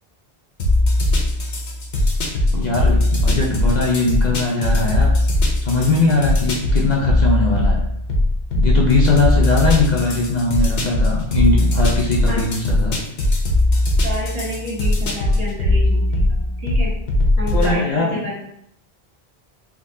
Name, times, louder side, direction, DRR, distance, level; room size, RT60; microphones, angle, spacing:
sound 1, 0.6-17.7, left 1 dB, 80° left, 1.0 m, -19 dB
voice 1, 2.6-5.1 5.6-7.8 8.5-13.0 17.5-18.2, left 3 dB, 50° left, -2 dB, 0.6 m, -20 dB
voice 2, 14.0-16.9 17.4-18.4, equal, 40° right, -6 dB, 1.2 m, -29 dB
3.7 x 2.6 x 2.6 m, 0.76 s
omnidirectional pair, 1.0 m